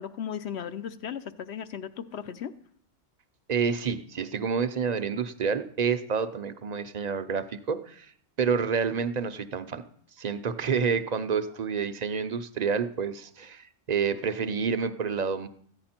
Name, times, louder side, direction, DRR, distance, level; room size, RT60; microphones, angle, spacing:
voice 1, 0.0-2.5, left 8 dB, 65° left, 11 dB, 1.0 m, -36 dB
voice 2, 3.5-8.1 8.4-9.8 10.2-15.5, right 6 dB, 45° right, 11 dB, 0.6 m, -28 dB
14.5 x 9.8 x 4.3 m, 0.62 s
omnidirectional pair, 1.2 m